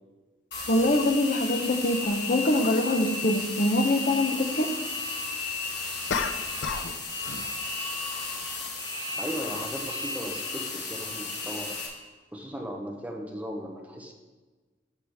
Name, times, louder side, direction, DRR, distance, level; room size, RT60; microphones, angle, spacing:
sound 1, 0.5-11.9, left 3 dB, 65° left, 2.0 m, -34 dB
voice 1, 0.7-4.7, left 1 dB, 50° left, 6 dB, 0.8 m, -24 dB
Polite coughing, 2.0-2.2 6.1-7.0 7.2-7.6, left 5 dB, 90° left, 0.6 m, -31 dB
voice 2, 9.2-11.7 12.3-14.1, equal, 10° right, 1 dB, 0.9 m, -37 dB
12.0 x 5.9 x 3.5 m, 1.3 s
head